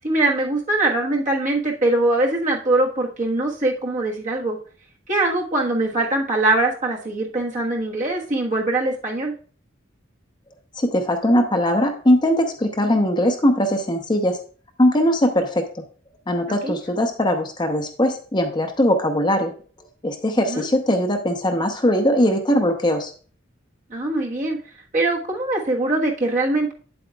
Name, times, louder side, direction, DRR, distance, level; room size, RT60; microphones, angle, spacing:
voice 1, 0.0-4.6 5.1-9.3 16.5-16.8 20.4-20.7 23.9-24.6 24.9-26.7, right 2 dB, 40° right, -1 dB, 1.3 m, -22 dB
voice 2, 10.8-14.4 14.8-15.6 16.3-19.5 20.0-23.1, equal, 25° left, 5 dB, 0.7 m, -20 dB
8.8 x 7.8 x 2.3 m, 0.41 s
head